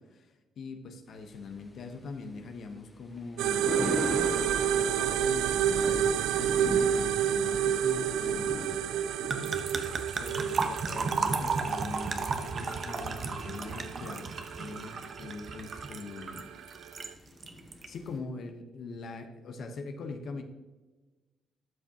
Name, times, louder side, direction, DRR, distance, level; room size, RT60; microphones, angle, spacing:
voice 1, 0.1-3.7 4.6-6.1 6.4-9.0 10.2-16.5 17.9-20.4, left 3 dB, 65° left, 5 dB, 0.9 m, -42 dB
Thunder, 1.1-18.2, left 1 dB, 20° left, 1.7 m, -42 dB
sound 1, 3.4-17.1, right 9 dB, 90° right, 0.3 m, -30 dB
sound 2, 5.8-6.0 6.3-6.6 9.3-17.1 17.4-17.9, right 4 dB, 45° right, 0.9 m, -34 dB
12.5 x 6.0 x 2.8 m, 1.2 s
cardioid pair, 90°, 0 cm